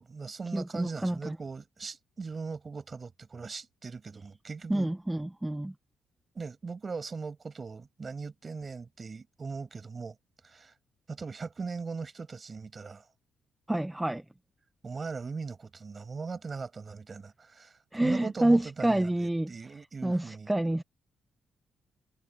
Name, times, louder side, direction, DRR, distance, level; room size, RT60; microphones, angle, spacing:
voice 1, 0.0-4.9 6.3-10.1 10.4-10.7 11.1-13.1 14.8-20.5, right 4 dB, 40° right, 6.6 m, -39 dB
voice 2, 0.5-1.4 4.7-5.7 13.7-14.2 17.9-19.5 20.0-20.8, right 1 dB, 10° right, 1.3 m, -28 dB
supercardioid pair, 60°, 0 cm